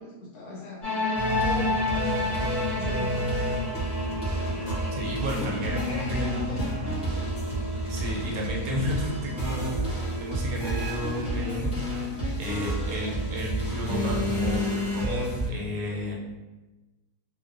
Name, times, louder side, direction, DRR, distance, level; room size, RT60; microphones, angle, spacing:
voice 1, 0.0-3.3 5.7-7.0 12.9-13.2, left 2 dB, 75° left, -5 dB, 1.2 m, -39 dB
sound 1, 0.8-13.5, left 2 dB, 35° left, 0.7 m, -33 dB
sound 2, 1.1-15.5, right 1 dB, 5° right, 0.5 m, -31 dB
sound 3, 4.6-6.2 6.6-7.5 9.4-10.0 10.6-11.4 12.4-13.3 13.9-15.0, left 3 dB, 50° left, 1.1 m, -35 dB
voice 2, 4.9-6.7 7.9-9.8 10.1-14.6 14.9-16.1, left 1 dB, 75° right, -2 dB, 1.0 m, -32 dB
2.7 x 2.1 x 2.4 m, 1.1 s
omnidirectional pair, 1.6 m